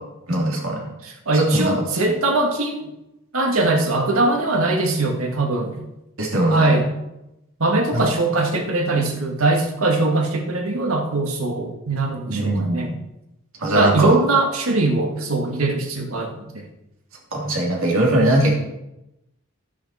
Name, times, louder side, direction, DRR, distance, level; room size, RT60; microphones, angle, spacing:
voice 1, 0.3-0.9 1.3-1.7 6.2-6.8 7.9-8.1 12.3-12.9 13.6-14.1 17.3-18.5, right 1 dB, 70° right, -1 dB, 3.1 m, -20 dB
voice 2, 1.0-2.9 3.3-5.9 6.5-6.8 7.6-12.9 13.7-16.6, right 2 dB, 85° right, 2 dB, 2.0 m, -21 dB
12.0 x 9.6 x 4.3 m, 0.91 s
head